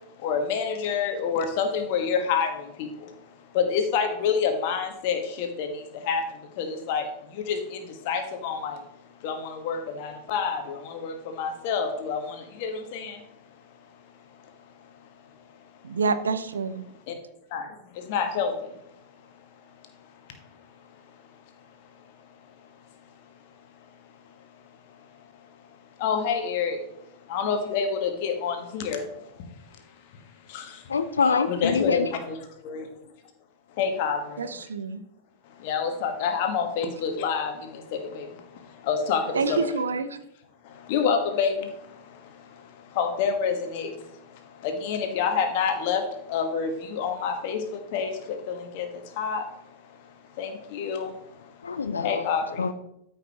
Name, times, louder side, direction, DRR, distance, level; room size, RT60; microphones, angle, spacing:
voice 1, 0.2-2.5 2.8-2.9 3.5-5.7 6.1-6.2 6.6-7.0 7.5-7.6 8.1-8.8 9.2-9.4 9.6-10.6 11.0-12.2 12.6-13.1 17.5-17.6 18.1-18.5 26.0-26.8 27.3-29.0 31.5-32.3 32.7-32.8 33.8-34.2 35.7-37.5 38.2-38.3 38.9-39.2 39.5-39.6 40.9-41.5 43.0-43.9 44.6-46.0 46.3-47.6 47.9-48.1 48.5-48.9 49.2-49.4 50.4-51.1 52.0-52.4, left 6 dB, 50° left, 1.4 m, -27 dB
voice 2, 15.8-16.8 34.4-35.0 39.3-40.2, right 4 dB, 70° right, 0.6 m, -27 dB
voice 3, 30.9-32.1 51.6-52.3 52.6-52.7, left 5 dB, 70° left, 0.6 m, -25 dB
13.0 x 5.4 x 2.9 m
figure-of-eight pair, 90°, 0 cm